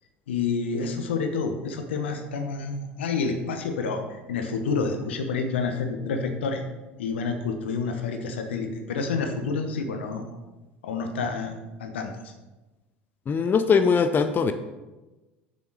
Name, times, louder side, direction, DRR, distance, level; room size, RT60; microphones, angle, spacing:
voice 1, 0.3-6.6 7.0-10.2 10.8-11.5 11.8-12.3, left 4 dB, 75° left, 6 dB, 1.0 m, -29 dB
voice 2, 13.3-14.5, left 5 dB, 30° left, 9 dB, 0.5 m, -21 dB
7.0 x 6.8 x 4.7 m, 1.1 s
hypercardioid pair, 65°, 6 cm